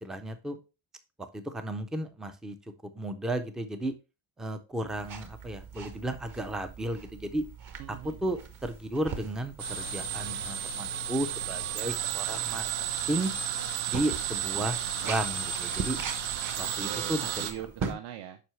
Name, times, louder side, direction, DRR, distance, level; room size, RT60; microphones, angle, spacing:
voice 1, 0.0-0.6 1.2-2.6 2.9-3.9 4.4-7.4 8.2-12.7 13.1-13.3 13.9-16.0 16.6-17.5 17.9-18.0, right 1 dB, ahead, 8 dB, 0.3 m, -34 dB
sound 1, 4.9-17.9, right 5 dB, 40° right, 1.1 m, -42 dB
voice 2, 7.8-8.2 16.6-18.4, right 11 dB, 60° right, 6 dB, 0.8 m, -41 dB
sound 2, 9.6-17.5, right 9 dB, 80° right, 1.1 m, -33 dB
7.5 x 5.5 x 3.2 m, 0.29 s
cardioid pair, 180°, 47 cm